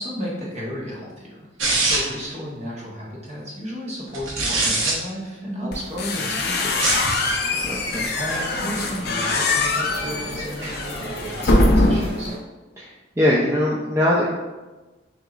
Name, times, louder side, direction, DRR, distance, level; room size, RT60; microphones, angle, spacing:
voice 1, 0.0-7.1 8.1-12.3, equal, 35° right, -5 dB, 1.2 m, -33 dB
sound 1, 1.6-2.2 4.1-4.9 6.7-7.1, right 2 dB, 85° right, 1.0 m, -22 dB
sound 2, 5.7-12.3, left 2 dB, 55° left, 0.5 m, -23 dB
sound 3, 7.1-12.4, right 1 dB, 50° right, 1.2 m, -36 dB
voice 2, 7.6-8.1 12.8-14.3, left 1 dB, 15° right, -5 dB, 0.4 m, -21 dB
6.2 x 2.8 x 2.4 m, 1.2 s
head